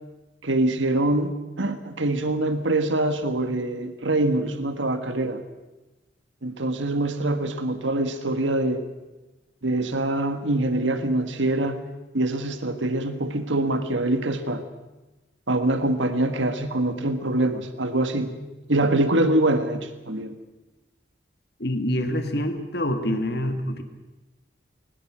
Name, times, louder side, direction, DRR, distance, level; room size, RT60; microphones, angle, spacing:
voice 1, 0.4-5.4 6.4-8.8 9.6-11.8 12.1-14.6 15.5-18.3 18.7-20.3, right 1 dB, 85° right, 8 dB, 1.6 m, -24 dB
voice 2, 21.6-23.8, equal, 55° left, 6 dB, 1.9 m, -26 dB
22.0 x 20.0 x 6.3 m, 1.1 s
head